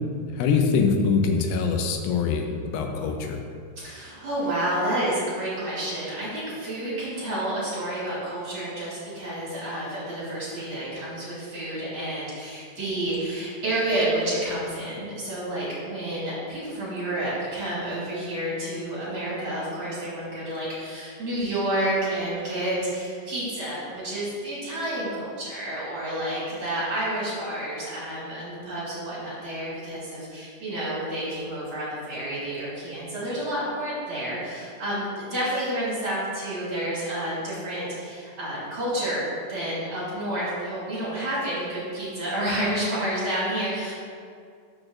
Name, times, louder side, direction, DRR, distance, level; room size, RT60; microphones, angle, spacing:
voice 1, 0.3-3.4, left 5 dB, 85° left, 4 dB, 2.4 m, -23 dB
voice 2, 3.8-43.9, right 1 dB, 40° right, -8 dB, 2.3 m, -30 dB
13.0 x 6.3 x 2.5 m, 2.3 s
omnidirectional pair, 4.0 m